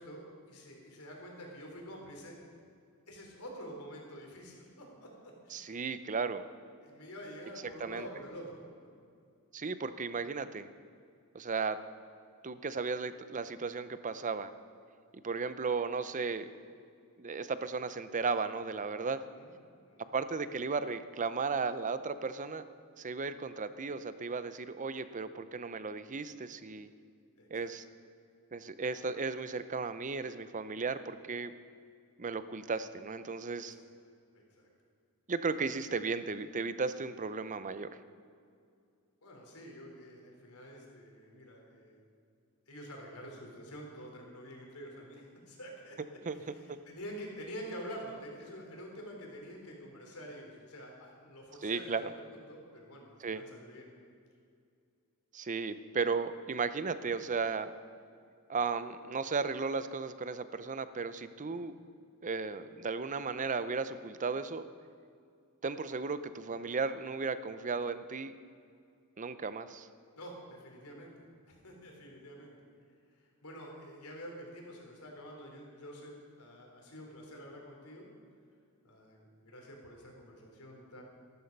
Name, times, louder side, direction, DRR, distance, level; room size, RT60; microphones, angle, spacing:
voice 1, 0.0-2.4 3.1-5.8 6.8-8.9 19.4-19.5 19.8-20.1 27.4-27.7 33.5-33.9 34.3-34.7 35.5-35.6 39.2-42.0 42.7-46.0 46.3-53.9 70.2-71.1 71.5-72.5 73.2-78.1 78.8-81.0, equal, 80° left, 0 dB, 3.5 m, -48 dB
voice 2, 5.5-6.5 7.8-8.1 9.5-10.7 11.3-11.8 12.4-14.5 15.2-16.5 17.2-19.2 20.1-22.6 23.0-26.9 27.5-27.8 28.5-31.5 32.2-33.7 35.3-37.9 46.3-46.8 51.6-52.1 53.2-53.4 55.3-57.7 58.5-61.8 62.2-64.7 65.6-68.3 69.2-69.9, right 4 dB, 35° right, 13 dB, 0.6 m, -35 dB
14.0 x 13.0 x 5.3 m, 2.3 s
head